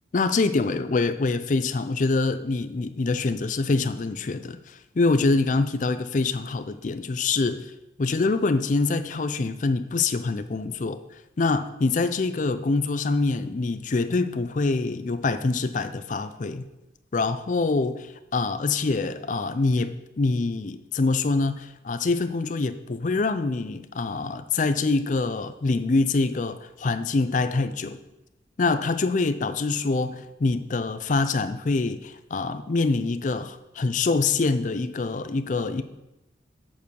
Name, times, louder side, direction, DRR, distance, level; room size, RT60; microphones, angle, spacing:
voice 1, 0.1-7.7 8.0-11.0 11.4-16.7 17.1-17.9 18.3-28.0 28.6-35.8, left 3 dB, 40° left, 11 dB, 0.4 m, -25 dB
7.3 x 4.6 x 6.8 m, 0.95 s
head